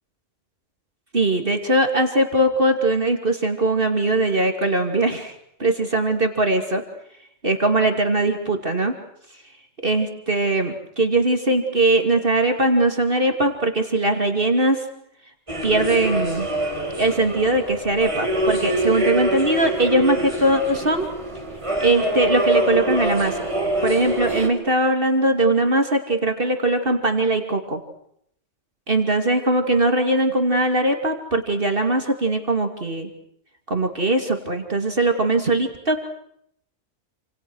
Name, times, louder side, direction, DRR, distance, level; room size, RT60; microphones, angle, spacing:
voice 1, 1.1-5.3 5.6-6.8 7.4-8.9 9.8-14.8 15.6-16.5 17.0-21.1 21.8-23.5 23.8-27.8 28.9-33.1 33.7-36.1, right 2 dB, 45° right, 5 dB, 2.9 m, -20 dB
sound 1, 15.5-24.5, right 1 dB, 25° right, 4.5 m, -25 dB
29.0 x 27.5 x 6.4 m, 0.72 s
omnidirectional pair, 1.2 m